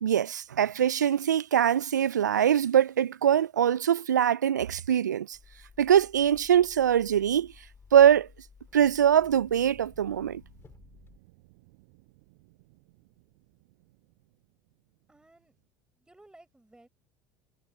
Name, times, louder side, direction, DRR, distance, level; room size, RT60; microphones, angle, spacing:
voice 1, 0.0-5.4 5.8-7.5 7.9-8.3 8.7-10.4, right 9 dB, 85° right, 0.4 m, -23 dB
sound 1, 5.3-11.2, left 5 dB, 25° left, 5.5 m, -55 dB
sound 2, 9.2-15.7, right 28 dB, 65° right, 5.9 m, -60 dB
voice 2, 15.1-15.6 16.0-16.9, right 2 dB, 10° right, 5.9 m, -56 dB
hypercardioid pair, 70°, 9 cm